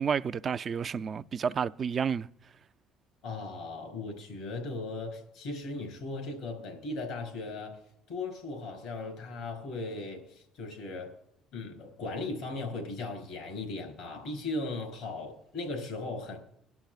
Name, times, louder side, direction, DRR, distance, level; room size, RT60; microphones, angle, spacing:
voice 1, 0.0-2.3, right 7 dB, 45° right, 0.4 m, -30 dB
voice 2, 3.2-7.8 8.1-11.1 11.5-16.4, left 3 dB, 85° left, 4.6 m, -37 dB
21.0 x 11.5 x 2.4 m
supercardioid pair, 70°, 0 cm